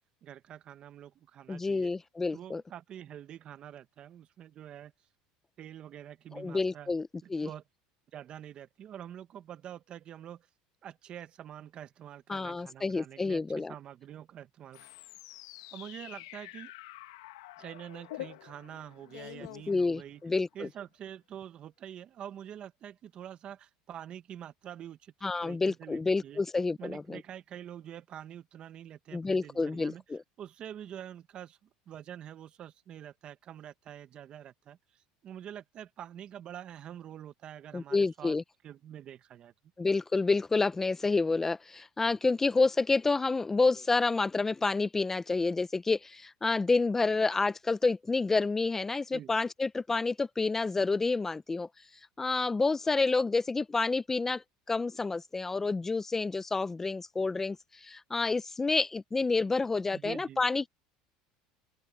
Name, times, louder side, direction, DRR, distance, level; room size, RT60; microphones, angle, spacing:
voice 1, 0.2-1.9 2.3-4.9 5.6-6.9 7.2-7.6 8.1-10.4 10.8-14.9 15.7-16.7 17.6-20.2 20.5-25.1 25.4-26.4 26.8-30.0 30.4-31.6 31.9-34.8 35.2-38.4 38.6-39.5 49.1-49.3 53.1-53.2 59.9-60.4, right 10 dB, 40° right, 1.2 m, -46 dB
voice 2, 1.5-2.6 6.3-7.5 12.3-13.7 19.7-20.7 25.2-27.2 29.1-30.2 37.7-38.4 39.8-51.7 52.2-60.7, left 3 dB, 15° left, 0.7 m, -29 dB
sound 1, 14.7-20.4, left 16 dB, 90° left, 1.3 m, -47 dB
open air
supercardioid pair, 115°, 2 cm